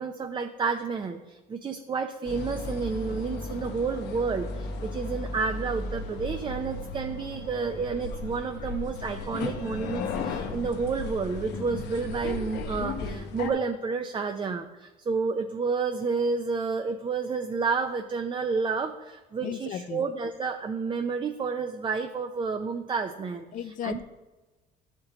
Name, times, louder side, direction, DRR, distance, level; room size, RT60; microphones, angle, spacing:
voice 1, 0.0-23.5 23.8-24.0, right 5 dB, 30° right, 6 dB, 0.5 m, -30 dB
sound 1, 2.2-13.5, left 3 dB, 80° left, 1.0 m, -35 dB
voice 2, 19.4-20.1 23.5-24.0, left 9 dB, 50° left, 13 dB, 0.4 m, -35 dB
12.0 x 4.5 x 3.8 m, 1.1 s
cardioid pair, 110°, 17 cm